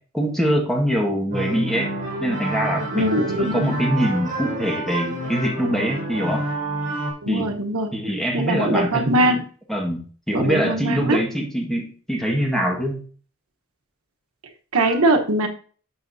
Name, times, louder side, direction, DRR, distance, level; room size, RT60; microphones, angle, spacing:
voice 1, 0.1-1.9 2.2-3.1 3.3-6.4 7.3-7.5 7.9-9.1 9.7-13.0, equal, ahead, 0 dB, 1.7 m, -23 dB
sound 1, 1.3-7.1, right 1 dB, 35° right, 5.2 m, -28 dB
voice 2, 2.9-3.7 7.2-7.9 8.3-9.5 10.3-11.2 14.7-15.5, right 1 dB, 90° right, 4 dB, 1.2 m, -21 dB
11.5 x 7.0 x 2.8 m, 0.41 s
head